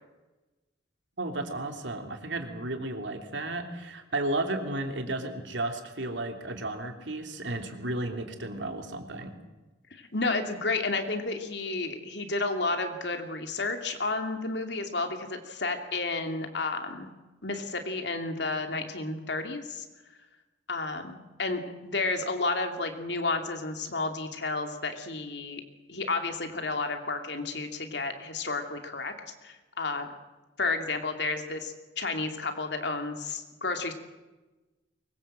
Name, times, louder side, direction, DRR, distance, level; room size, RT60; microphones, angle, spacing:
voice 1, 1.2-9.3, right 2 dB, 80° right, 5 dB, 3.1 m, -33 dB
voice 2, 9.9-17.1 17.4-19.8 20.7-25.6 25.9-29.1 29.4-30.1 30.6-33.9, left 3 dB, 70° left, 5 dB, 2.8 m, -31 dB
24.0 x 21.5 x 7.7 m, 1.1 s
head